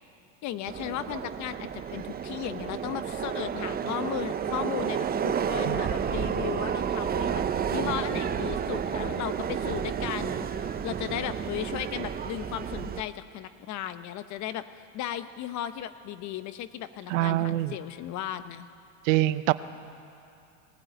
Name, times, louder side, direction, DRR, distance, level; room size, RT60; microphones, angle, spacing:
voice 1, 0.4-18.7, left 11 dB, 50° left, 12 dB, 1.0 m, -36 dB
Subway metro underground, 0.7-13.0, right 7 dB, 25° right, 0.8 m, -31 dB
voice 2, 17.1-17.7 19.0-19.5, right 16 dB, 80° right, 14 dB, 0.8 m, -24 dB
20.0 x 15.0 x 9.2 m, 2.5 s
supercardioid pair, 110°, 38 cm